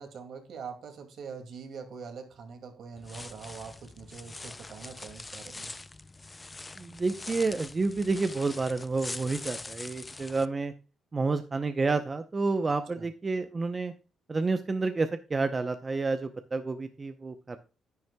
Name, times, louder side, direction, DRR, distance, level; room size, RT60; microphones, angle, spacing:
voice 1, 0.0-5.7 12.9-13.1, right 5 dB, 65° right, 2.2 m, -43 dB
sound 1, 3.0-10.5, left 3 dB, 20° left, 0.4 m, -43 dB
voice 2, 6.8-10.7 11.1-13.9 14.3-17.6, right 3 dB, 30° right, 0.7 m, -29 dB
10.5 x 9.4 x 2.3 m
cardioid pair, 90°, 0 cm